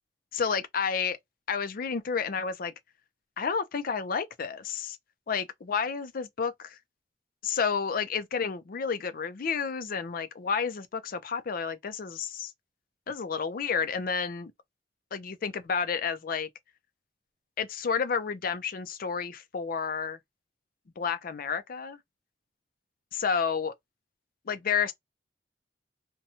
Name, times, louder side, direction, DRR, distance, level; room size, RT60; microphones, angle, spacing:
voice 1, 0.3-1.2 1.5-2.7 3.4-5.0 5.3-6.8 7.4-12.5 13.1-14.5 15.1-16.5 17.6-20.2 21.0-22.0 23.1-23.7 24.5-24.9, left 6 dB, 55° left, 0.5 m, -30 dB
2.7 x 2.2 x 2.8 m
head